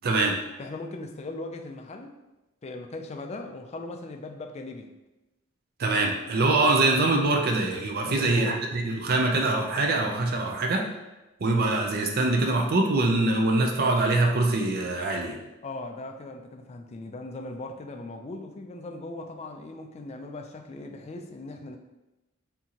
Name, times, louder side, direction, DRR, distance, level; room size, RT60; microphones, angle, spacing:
voice 1, 0.0-0.4 5.8-10.9 11.4-15.4, right 2 dB, 45° right, 1 dB, 0.5 m, -24 dB
voice 2, 0.6-2.1 2.6-4.9 8.0-8.6 15.6-21.8, left 2 dB, 30° left, 4 dB, 0.4 m, -39 dB
4.4 x 3.6 x 2.8 m, 1.0 s
head